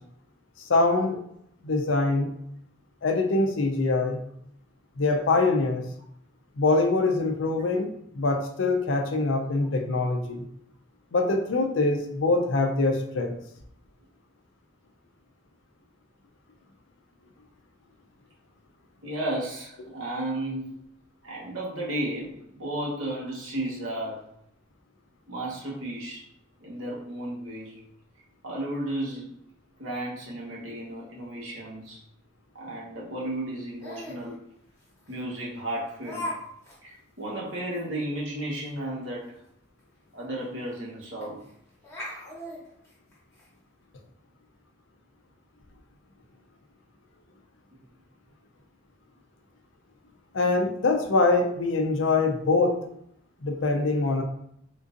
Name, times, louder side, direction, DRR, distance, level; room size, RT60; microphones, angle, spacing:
voice 1, 0.7-1.2 1.6-2.3 3.0-4.2 5.0-5.8 6.6-10.5 11.1-13.4 50.3-52.8 53.4-54.2, left 3 dB, 80° left, 4 dB, 0.5 m, -24 dB
voice 2, 19.0-20.7 21.2-24.2 25.3-26.2 26.6-27.8 28.4-29.4 29.8-32.0 32.5-34.4 35.1-36.3 36.8-39.4 40.1-41.4, right 1 dB, 85° right, -4 dB, 1.2 m, -33 dB
Laughter, 33.8-34.2 35.1-35.2 36.0-36.4 36.6-36.8 37.2-37.3 37.7-37.8 39.8-39.9 40.2-40.3 41.2-41.5 41.8-43.5, left 1 dB, 15° left, 1.1 m, -37 dB
3.7 x 2.5 x 2.5 m, 0.71 s
head